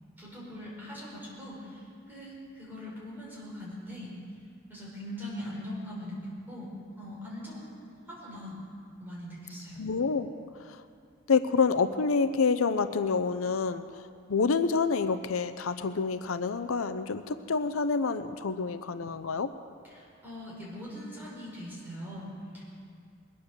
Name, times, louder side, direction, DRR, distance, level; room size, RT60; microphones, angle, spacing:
voice 1, 0.2-4.1 4.7-6.7 7.0-8.5 9.0-9.8 19.9-22.7, equal, 10° right, -6 dB, 5.2 m, -41 dB
voice 2, 9.8-10.3 10.6-10.8 11.3-13.8 14.3-19.5, left 4 dB, 85° left, 11 dB, 0.6 m, -27 dB
21.5 x 9.5 x 6.8 m, 2.3 s
head